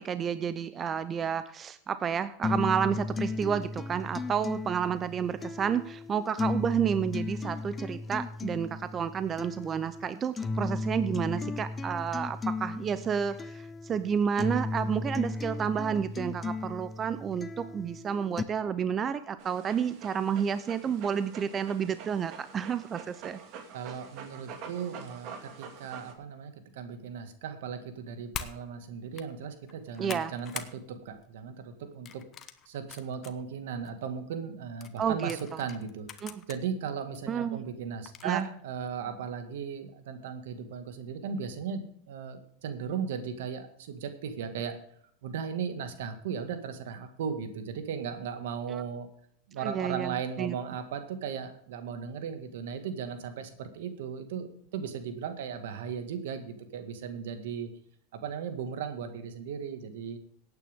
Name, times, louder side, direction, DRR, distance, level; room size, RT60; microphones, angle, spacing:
voice 1, 0.0-23.4 30.0-30.3 35.0-35.4 36.2-36.4 37.3-37.7 38.2-38.4 48.7-48.8 49.6-50.5, right 7 dB, 30° right, 13 dB, 0.7 m, -30 dB
sound 1, 2.4-18.4, left 3 dB, 20° left, 0.8 m, -35 dB
Dog, 19.4-26.1, right 6 dB, 50° right, 2.2 m, -46 dB
voice 2, 23.7-32.2 32.7-36.1 36.5-44.7 45.2-49.1 49.5-57.7 58.1-60.2, right 7 dB, 75° right, 7 dB, 2.0 m, -37 dB
sound 2, 28.3-28.6 29.0-29.3 29.7-30.7 31.1-31.4 32.1-33.3 33.8-33.9 34.8-36.6 37.1-37.2 38.1-38.4, left 9 dB, 35° left, 1.1 m, -42 dB
17.0 x 9.1 x 3.7 m, 0.63 s
supercardioid pair, 115°, 0 cm